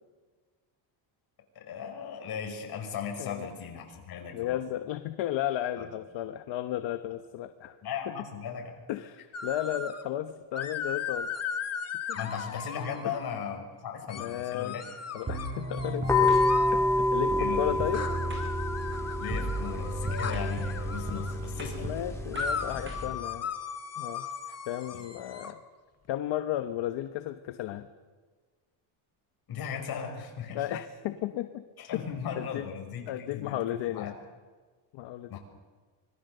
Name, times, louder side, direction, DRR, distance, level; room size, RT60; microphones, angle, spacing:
voice 1, 1.5-4.6 5.8-5.9 7.8-8.8 12.1-14.8 17.4-17.8 19.2-22.0 24.5-24.6 24.9-25.0 29.5-30.6 31.8-33.6 33.8-34.1 35.3-35.4, left 7 dB, 50° left, 2 dB, 6.0 m, -37 dB
voice 2, 4.3-7.8 8.1-8.2 8.9-11.4 12.1-12.2 13.0-13.1 14.1-14.8 15.1-18.1 21.8-23.5 24.0-24.3 24.7-25.6 26.1-27.9 30.5-31.6 31.9-32.0 32.4-32.7 33.1-34.1 34.9-35.4, left 13 dB, 65° left, 8 dB, 1.3 m, -34 dB
sound 1, 9.3-10.0 10.5-13.3 14.1-16.7 17.9-21.4 22.3-25.5, left 6 dB, 30° left, 1.7 m, -37 dB
sound 2, 15.3-23.4, right 1 dB, 25° right, 5.7 m, -35 dB
sound 3, 16.1-23.1, left 2 dB, 5° left, 3.2 m, -29 dB
25.5 x 21.0 x 6.8 m, 1.4 s
cardioid pair, 130°, 49 cm